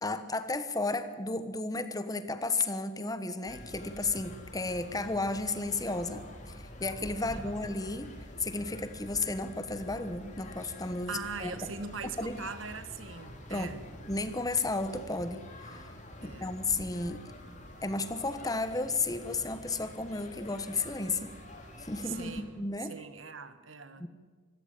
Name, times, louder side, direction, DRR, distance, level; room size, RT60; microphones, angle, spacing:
voice 1, 0.0-6.2 6.5-8.1 8.4-11.7 12.2-12.4 13.5-13.7 14.1-15.4 15.7-15.9 16.2-17.2 17.8-21.3 21.8-23.0 24.0-24.1, left 3 dB, 20° left, 11 dB, 1.1 m, -33 dB
sound 1, 3.4-22.4, left 1 dB, 40° left, 3.2 m, -47 dB
voice 2, 11.1-13.8 16.2-16.5 22.0-22.5 22.9-24.1, right 5 dB, 85° right, 11 dB, 1.6 m, -41 dB
25.5 x 14.5 x 9.0 m, 1.5 s
head